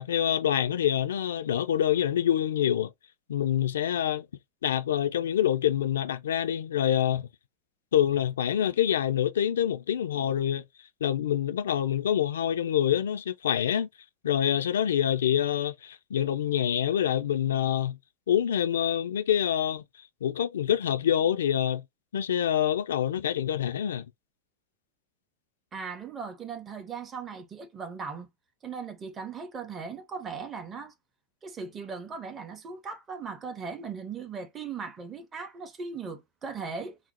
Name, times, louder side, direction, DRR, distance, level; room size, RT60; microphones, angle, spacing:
voice 1, 0.0-2.9 3.3-4.3 4.6-7.3 7.9-10.6 11.0-13.9 14.2-18.0 18.3-19.8 20.2-21.8 22.1-24.0, left 10 dB, 65° left, 0.3 m, -26 dB
voice 2, 25.7-28.3 28.6-30.9 31.4-37.0, right 5 dB, 20° right, 0.6 m, -38 dB
3.9 x 2.0 x 2.8 m
figure-of-eight pair, 90°, 0 cm